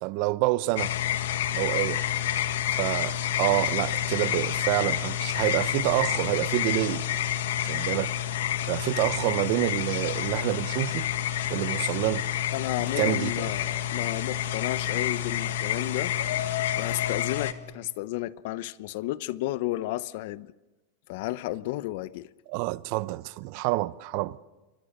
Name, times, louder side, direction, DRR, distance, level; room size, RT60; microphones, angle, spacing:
voice 1, 0.0-0.9 1.5-2.0 2.8-7.0 7.6-8.1 8.7-11.1 11.5-12.3 13.0-13.4 22.5-24.4, right 19 dB, 45° right, 0.7 m, -27 dB
sound 1, 0.7-17.5, left 11 dB, 75° left, 1.6 m, -29 dB
voice 2, 12.5-16.1 16.8-20.5 21.1-22.3, left 16 dB, 55° left, 0.8 m, -32 dB
28.5 x 23.5 x 6.6 m
supercardioid pair, 160°, 0 cm